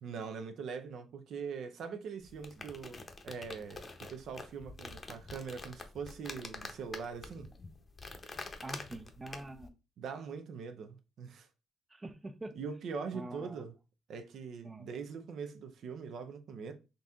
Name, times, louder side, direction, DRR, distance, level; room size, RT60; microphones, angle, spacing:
voice 1, 0.0-7.5 10.0-11.5 12.6-13.7 14.1-16.7, right 5 dB, 70° right, 0.6 m, -42 dB
sound 1, 2.2-9.7, left 3 dB, 35° left, 0.7 m, -47 dB
voice 2, 8.6-9.7 11.9-12.6 13.1-13.6 14.6-14.9, right 2 dB, 20° right, 0.5 m, -45 dB
3.9 x 2.8 x 3.5 m
cardioid pair, 90°, 0 cm